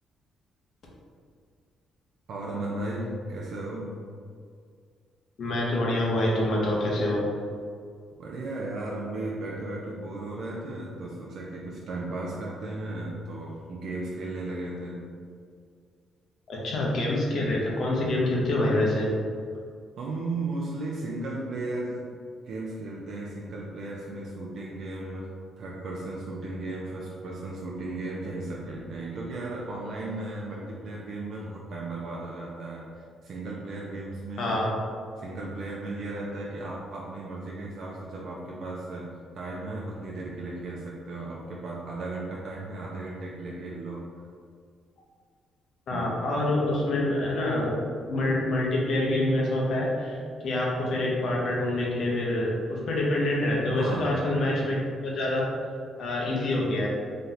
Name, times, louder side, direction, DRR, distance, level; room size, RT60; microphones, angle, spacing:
voice 1, 2.3-4.0 8.2-15.1 20.0-22.1 22.4-34.6 35.2-44.1 45.9-46.4 53.7-54.4, right 2 dB, 65° right, -3 dB, 0.5 m, -35 dB
voice 2, 5.4-7.2 16.5-19.1 34.4-34.7 45.9-55.5 56.0-56.9, left 1 dB, 65° left, -3 dB, 1.0 m, -26 dB
3.2 x 2.7 x 3.9 m, 2.1 s
cardioid pair, 90°, 0 cm